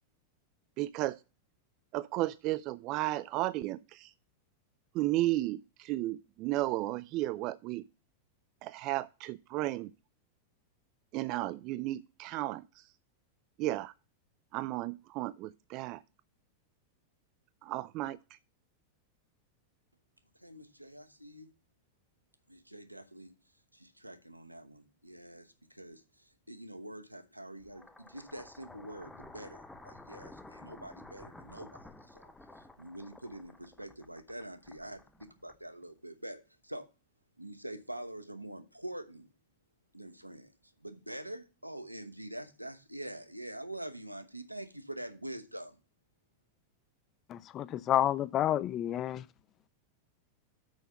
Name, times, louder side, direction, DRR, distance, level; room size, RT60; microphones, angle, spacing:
voice 1, 0.8-1.2 1.9-4.1 4.9-7.8 8.6-9.9 11.1-12.6 13.6-13.9 14.5-16.0 17.6-18.2, right 16 dB, 40° right, 0.3 m, -33 dB
voice 2, 20.4-21.5 22.5-23.3 23.7-36.9 37.4-39.3 39.9-40.5 40.8-45.8, right 1 dB, 90° right, 1.0 m, -45 dB
sound 1, 27.6-35.9, left 2 dB, 5° left, 0.8 m, -53 dB
voice 3, 47.3-49.3, left 11 dB, 30° left, 0.4 m, -30 dB
6.3 x 5.5 x 6.4 m
figure-of-eight pair, 90°, 0 cm